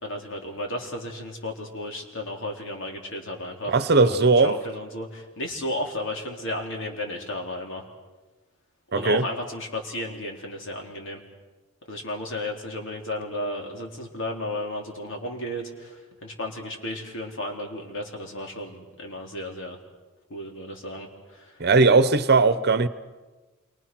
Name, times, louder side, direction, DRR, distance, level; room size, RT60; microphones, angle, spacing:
voice 1, 0.0-3.8 4.0-7.9 8.9-11.2 11.9-19.8 20.3-21.7, left 1 dB, 60° left, 3.9 m, -33 dB
voice 2, 3.7-4.6 8.9-9.2 21.6-22.9, right 3 dB, 50° right, 1.1 m, -18 dB
28.0 x 24.5 x 6.2 m
head